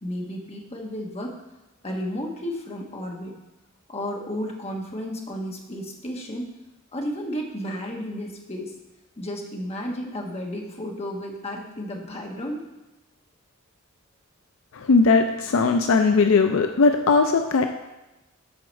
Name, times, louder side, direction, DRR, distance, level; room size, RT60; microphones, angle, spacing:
voice 1, 0.0-1.4 1.8-3.3 3.9-6.5 6.9-8.7 9.2-12.6, equal, 30° left, 0 dB, 1.3 m, -32 dB
voice 2, 14.7-17.7, left 4 dB, 65° left, 6 dB, 0.5 m, -19 dB
7.8 x 4.8 x 6.2 m, 1.0 s
head